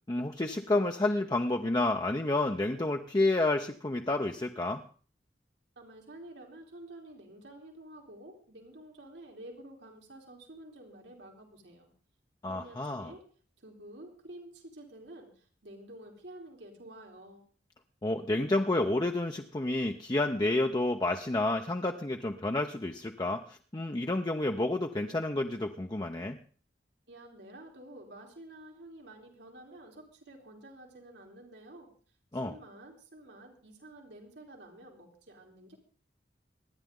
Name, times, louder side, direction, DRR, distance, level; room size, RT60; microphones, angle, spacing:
voice 1, 0.1-4.8 12.4-13.1 18.0-26.4 32.3-32.6, left 2 dB, 25° left, 3 dB, 0.7 m, -30 dB
voice 2, 5.8-11.9 12.5-13.2 13.6-17.5 27.1-31.9 32.3-35.8, right 1 dB, 85° right, 1 dB, 3.5 m, -50 dB
25.5 x 10.5 x 3.7 m, 0.42 s
head